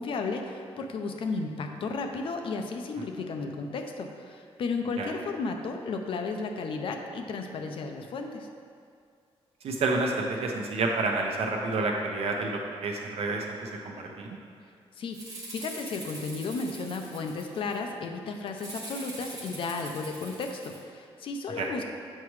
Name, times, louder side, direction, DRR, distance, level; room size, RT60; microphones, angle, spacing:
voice 1, 0.0-8.5 15.0-21.8, left 4 dB, 60° left, 4 dB, 0.6 m, -34 dB
voice 2, 9.6-14.3 21.6-21.7, right 3 dB, 75° right, 1 dB, 0.8 m, -29 dB
Rattle (instrument), 15.1-17.8 18.6-20.8, right 2 dB, 35° right, 1.2 m, -43 dB
7.5 x 5.8 x 3.1 m, 2.2 s
wide cardioid pair, 175°, 10 cm